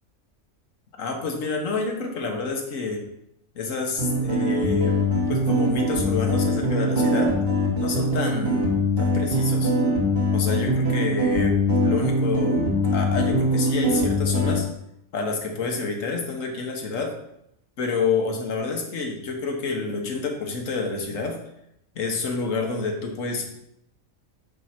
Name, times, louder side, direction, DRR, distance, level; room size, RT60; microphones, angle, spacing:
voice 1, 1.0-3.0 3.5-5.0 5.3-7.3 7.7-8.7 9.0-9.7 10.3-12.6 12.9-14.7 15.1-17.2 17.8-21.4 21.9-23.5, left 4 dB, 70° left, 3 dB, 1.5 m, -28 dB
sound 1, 4.0-14.6, left 1 dB, 45° right, 1.5 m, -22 dB
5.4 x 4.7 x 5.8 m, 0.80 s
omnidirectional pair, 1.4 m